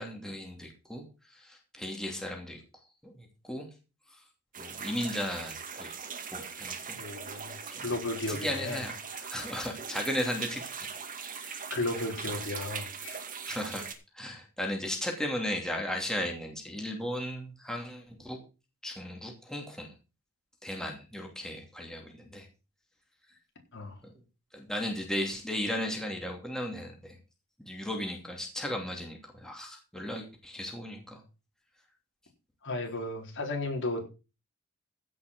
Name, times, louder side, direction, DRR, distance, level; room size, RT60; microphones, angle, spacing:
voice 1, 0.0-2.6 3.0-3.7 4.1-4.2 4.6-5.9 6.3-7.0 7.7-7.9 8.3-9.0 9.3-10.9 11.2-11.7 13.5-13.8 14.1-18.4 18.8-19.9 20.6-22.5 24.5-27.2 27.6-31.2, left 1 dB, 5° left, 2.7 m, -36 dB
sound 1, 4.5-13.9, right 6 dB, 40° right, 2.2 m, -40 dB
voice 2, 6.9-7.6 7.8-8.8 9.1-9.4 11.3-13.2 23.7-24.0 32.6-34.1, left 2 dB, 60° left, 4.3 m, -34 dB
16.0 x 6.2 x 6.1 m
head